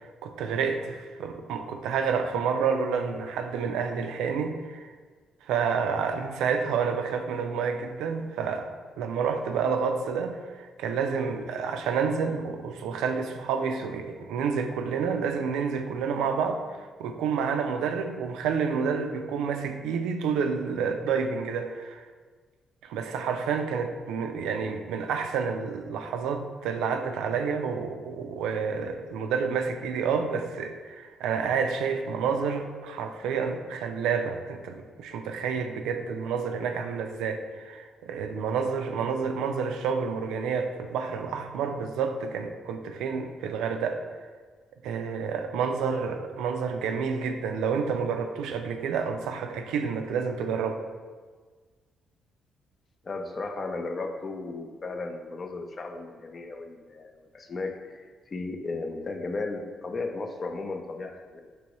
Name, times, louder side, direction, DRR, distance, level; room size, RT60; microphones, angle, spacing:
voice 1, 0.0-4.9 5.4-8.7 9.0-22.1 22.8-44.1 44.8-50.8, right 6 dB, 90° right, 6 dB, 0.3 m, -29 dB
voice 2, 53.0-61.4, left 3 dB, 40° left, 5 dB, 0.4 m, -35 dB
4.6 x 3.0 x 2.9 m, 1.5 s
cardioid pair, 90°, 0 cm